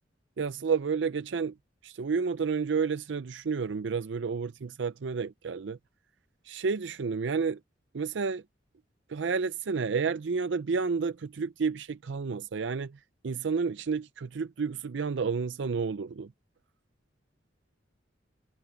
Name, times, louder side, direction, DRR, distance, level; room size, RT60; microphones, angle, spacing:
voice 1, 0.4-1.5 1.8-5.8 6.5-7.6 7.9-8.4 9.1-12.9 13.2-16.3, right 5 dB, 70° right, 0.5 m, -30 dB
head